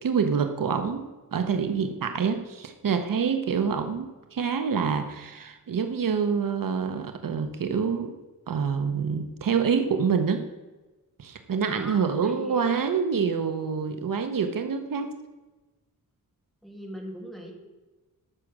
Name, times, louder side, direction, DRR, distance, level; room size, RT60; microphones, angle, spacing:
voice 1, 0.0-8.1 8.5-10.5 11.2-15.1, right 6 dB, 65° right, 7 dB, 0.9 m, -26 dB
voice 2, 11.7-12.6 13.1-13.2 16.6-17.5, equal, ahead, -1 dB, 2.2 m, -40 dB
13.5 x 6.3 x 6.1 m, 1.2 s
wide cardioid pair, 175°, 35 cm